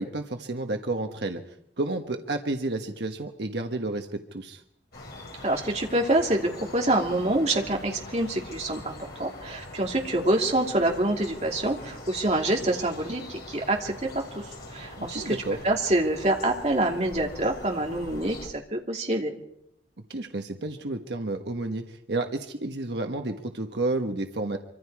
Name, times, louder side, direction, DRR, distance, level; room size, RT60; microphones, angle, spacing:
voice 1, 0.0-1.4 1.8-4.6 15.0-15.6 20.1-24.6, right 2 dB, 75° right, 5 dB, 1.3 m, -31 dB
sound 1, 4.9-18.5, left 1 dB, 60° left, 5.7 m, -43 dB
voice 2, 5.4-14.4 14.7-15.4 15.6-19.3, right 1 dB, 35° right, 1 dB, 2.8 m, -26 dB
25.5 x 25.0 x 4.8 m, 0.75 s
head